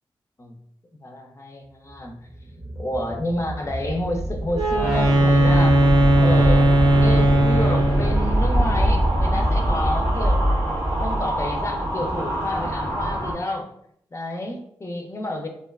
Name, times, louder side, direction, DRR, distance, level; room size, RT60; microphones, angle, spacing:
voice 1, 1.0-5.9 6.2-10.5 11.0-13.7 14.1-15.5, left 1 dB, 30° left, 3 dB, 0.5 m, -30 dB
sound 1, 2.3-12.4, equal, 20° right, 0.7 m, -24 dB
Wind instrument woodwind instrument, 4.5-8.2, right 1 dB, 55° right, 0.6 m, -17 dB
sound 2, 4.7-13.3, right 1 dB, 90° right, 0.8 m, -29 dB
2.4 x 2.2 x 2.3 m, 0.69 s
cardioid pair, 45°, 10 cm